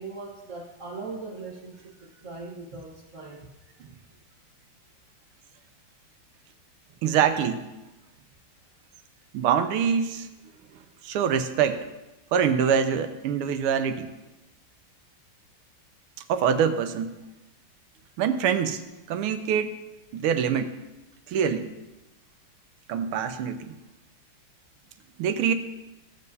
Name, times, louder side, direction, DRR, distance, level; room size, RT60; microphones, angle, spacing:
voice 1, 0.0-3.5, right 3 dB, 40° right, -2 dB, 1.3 m, -40 dB
voice 2, 7.0-7.7 9.3-10.3 11.0-11.9 12.3-14.1 16.3-17.1 18.2-18.8 19.1-19.8 20.1-20.7 21.3-21.7 22.9-23.7 25.2-25.5, right 7 dB, 80° right, 9 dB, 1.6 m, -24 dB
16.0 x 7.5 x 2.7 m, 1.0 s
omnidirectional pair, 2.4 m